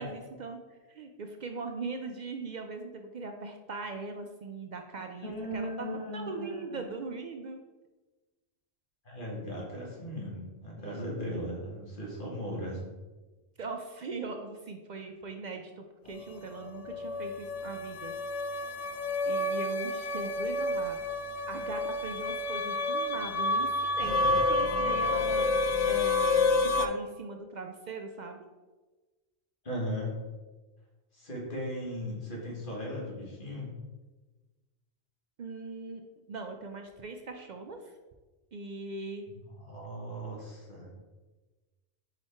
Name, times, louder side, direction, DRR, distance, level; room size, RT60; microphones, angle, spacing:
voice 1, 0.0-7.6 10.8-11.4 13.6-18.1 19.2-21.0 21.5-28.4 35.4-36.0 36.3-37.9 38.5-39.2, right 3 dB, 60° right, 4 dB, 0.5 m, -40 dB
voice 2, 5.2-6.9 9.1-12.8 24.2-24.3 29.6-30.2 31.1-33.7 39.6-40.9, equal, 50° left, -3 dB, 1.8 m, -37 dB
sound 1, 16.1-26.9, left 2 dB, 70° left, 0.3 m, -29 dB
4.8 x 4.6 x 4.3 m, 1.2 s
omnidirectional pair, 1.2 m